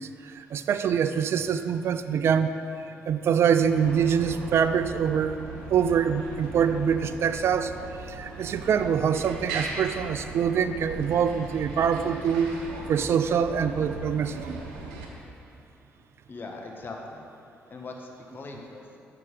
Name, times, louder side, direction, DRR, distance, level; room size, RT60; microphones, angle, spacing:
voice 1, 0.0-2.5 2.8-5.4 5.7-12.6 12.9-14.6, right 7 dB, 60° right, 10 dB, 0.3 m, -25 dB
sound 1, 3.7-15.1, right 3 dB, 85° right, 0.8 m, -39 dB
voice 2, 16.3-17.3 17.7-19.0, left 3 dB, 45° left, 1 dB, 1.2 m, -40 dB
6.7 x 6.4 x 5.2 m, 2.8 s
hypercardioid pair, 45°, 5 cm